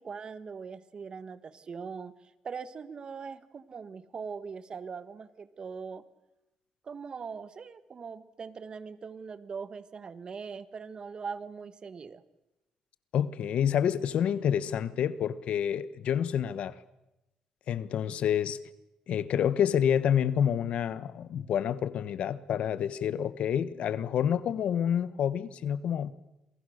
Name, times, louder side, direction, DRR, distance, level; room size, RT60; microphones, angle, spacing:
voice 1, 0.0-2.1 2.4-6.0 6.8-12.2, right 5 dB, 45° right, 13 dB, 1.5 m, -41 dB
voice 2, 13.1-16.8 17.7-18.6 19.1-26.1, left 9 dB, 70° left, 15 dB, 1.2 m, -28 dB
28.0 x 23.5 x 6.7 m, 0.93 s
cardioid pair, 90°, 2 cm